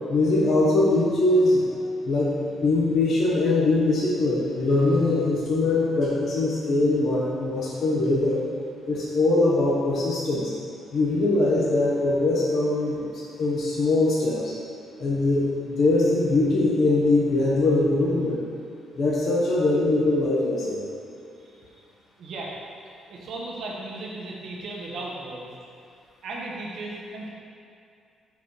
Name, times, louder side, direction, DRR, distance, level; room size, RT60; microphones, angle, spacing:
voice 1, 0.1-1.7 2.0-2.3 2.6-8.4 8.8-10.5 10.9-14.5 15.0-18.4 19.0-20.8, left 2 dB, 55° left, -6 dB, 1.0 m, -22 dB
voice 2, 22.2-22.5 22.8-25.5 26.2-27.3, right 2 dB, 65° right, -2 dB, 1.0 m, -36 dB
4.6 x 4.6 x 5.5 m, 2.6 s
cardioid pair, 115°, 0 cm